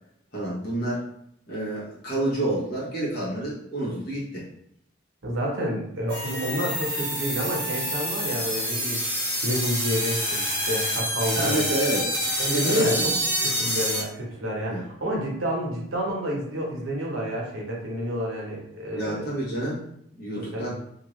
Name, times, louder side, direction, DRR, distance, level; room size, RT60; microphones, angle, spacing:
voice 1, 0.3-1.0 1.5-4.4 11.3-12.1 12.5-13.1 14.7-14.8 18.9-19.9 20.2-20.7, right 1 dB, 50° left, -6 dB, 1.1 m, -28 dB
voice 2, 5.2-11.6 12.4-13.1 13.4-19.3 20.4-20.7, equal, 65° right, -3 dB, 0.9 m, -29 dB
sound 1, 6.1-14.0, equal, 10° left, 1.3 m, -27 dB
2.7 x 2.5 x 3.1 m, 0.73 s
head